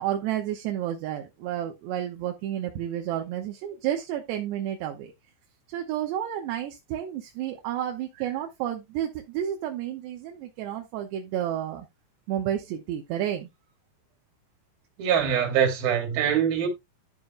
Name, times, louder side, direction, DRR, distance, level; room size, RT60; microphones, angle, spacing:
voice 1, 0.0-5.1 5.7-11.9 12.3-13.5, right 11 dB, 75° right, 3.0 m, -31 dB
voice 2, 15.0-16.7, right 8 dB, 60° right, 4.0 m, -23 dB
12.5 x 7.4 x 2.3 m
omnidirectional pair, 5.3 m